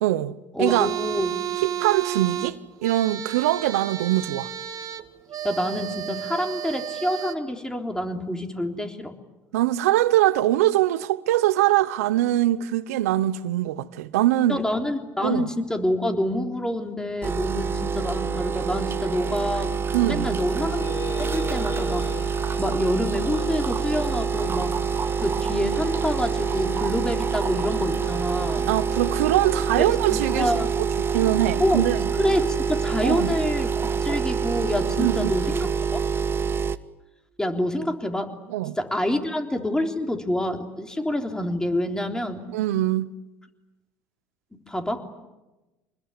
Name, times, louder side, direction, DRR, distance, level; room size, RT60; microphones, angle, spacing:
voice 1, 0.0-0.9 1.6-4.5 9.5-14.6 15.2-15.5 19.9-20.4 28.7-30.5 31.0-32.1 33.0-33.3 35.0-35.3 38.5-38.8 42.5-43.1, right 14 dB, 85° right, 1.0 m, -23 dB
voice 2, 0.5-1.3 1.6-1.7 4.0-4.1 5.4-9.1 14.5-20.9 21.2-22.1 22.6-24.7 25.2-28.7 30.1-30.7 31.6-31.9 32.2-35.7 35.9-36.0 37.4-38.3 38.8-42.5 44.5-45.0, left 1 dB, 10° left, 3.4 m, -27 dB
sound 1, 0.6-7.3, right 10 dB, 50° right, 1.7 m, -32 dB
sound 2, 17.2-36.8, right 6 dB, 30° right, 1.3 m, -26 dB
sound 3, 17.8-32.8, left 6 dB, 50° left, 1.8 m, -42 dB
25.5 x 20.5 x 9.8 m
hypercardioid pair, 80°, 8 cm